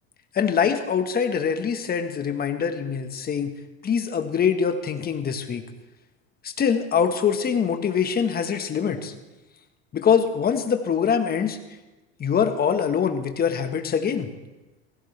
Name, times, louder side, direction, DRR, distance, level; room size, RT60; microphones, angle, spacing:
voice 1, 0.3-3.5 3.8-5.6 6.4-9.1 9.9-11.6 12.2-14.3, left 7 dB, 30° left, 7 dB, 1.4 m, -23 dB
17.0 x 16.0 x 3.4 m, 1.1 s
supercardioid pair, 105°, 31 cm